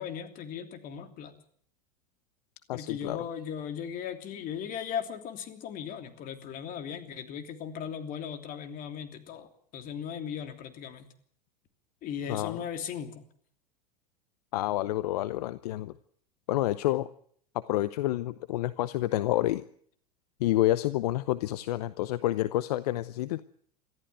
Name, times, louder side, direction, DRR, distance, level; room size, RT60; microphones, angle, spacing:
voice 1, 0.0-1.3 2.7-11.1 12.0-13.1, left 8 dB, 45° left, 7 dB, 3.1 m, -37 dB
voice 2, 2.7-3.2 12.3-12.6 14.5-15.9 16.5-17.1 17.7-19.6 20.4-23.4, left 15 dB, 70° left, 15 dB, 0.8 m, -28 dB
22.5 x 14.5 x 9.2 m, 0.62 s
hypercardioid pair, 100°, 21 cm